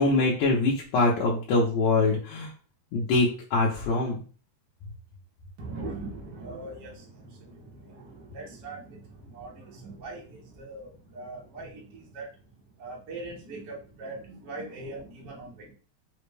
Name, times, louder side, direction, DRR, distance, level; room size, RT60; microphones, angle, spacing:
voice 1, 0.0-2.5 2.9-4.2, left 3 dB, 70° left, -3 dB, 1.9 m, -24 dB
voice 2, 5.6-12.3 12.8-15.7, right 2 dB, 70° right, -3 dB, 1.0 m, -41 dB
5.1 x 2.2 x 3.2 m, 0.38 s
omnidirectional pair, 3.5 m